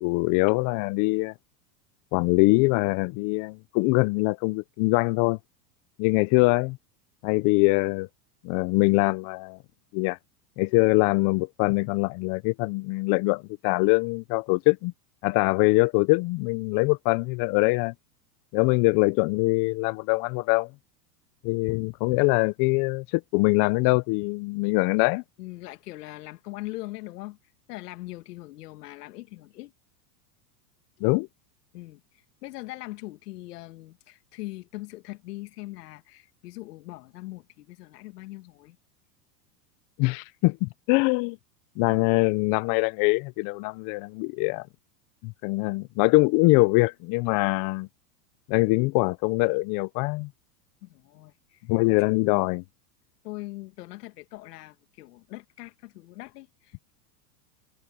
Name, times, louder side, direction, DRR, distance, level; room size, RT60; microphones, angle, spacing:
voice 1, 0.0-1.3 2.1-5.4 6.0-6.8 7.2-8.1 8.4-9.6 9.9-10.2 10.6-14.9 15.2-17.9 18.5-20.7 21.4-25.2 31.0-31.3 40.0-41.4 41.8-44.7 45.2-47.9 48.5-50.3 51.7-52.6, left 26 dB, 40° left, 0.7 m, -23 dB
voice 2, 25.4-29.7 31.7-38.8 50.8-51.7 52.1-52.5 53.2-56.9, left 19 dB, 70° left, 1.7 m, -41 dB
supercardioid pair, 125°, 48 cm